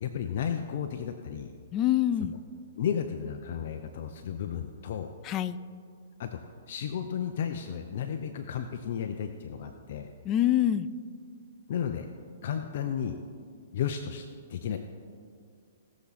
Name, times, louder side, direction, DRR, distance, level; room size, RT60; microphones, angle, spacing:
voice 1, 0.0-1.5 2.8-5.1 6.2-10.1 11.7-12.1 12.4-13.2 13.7-14.8, left 8 dB, 55° left, 6 dB, 0.7 m, -33 dB
voice 2, 1.7-2.3 5.2-5.6 10.2-10.9, left 12 dB, 25° left, 14 dB, 0.4 m, -25 dB
18.5 x 7.2 x 4.2 m, 2.2 s
hypercardioid pair, 145°, 0 cm